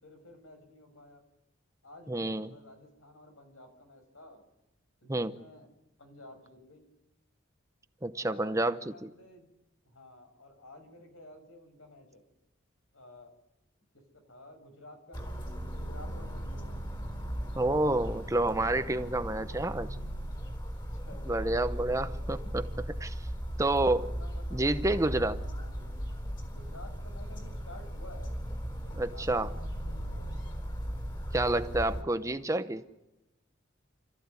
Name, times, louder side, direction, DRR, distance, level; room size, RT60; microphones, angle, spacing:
voice 1, 0.0-1.2 1.8-4.4 5.0-5.7 6.0-6.9 8.1-9.5 9.8-12.2 12.9-13.3 13.9-16.8 20.7-22.5 23.6-24.8 25.4-26.0 26.4-28.3 28.8-30.3 31.3-32.8, left 1 dB, 80° left, 5 dB, 5.9 m, -53 dB
voice 2, 2.1-2.5 5.1-5.3 8.0-9.1 17.6-19.9 21.3-22.7 23.0-23.3 23.6-24.1 24.5-25.4 29.0-29.5 31.3-32.8, right 2 dB, 15° right, 10 dB, 0.8 m, -29 dB
sound 1, 15.1-32.0, equal, 25° left, 4.0 m, -37 dB
29.5 x 14.5 x 9.7 m, 0.95 s
head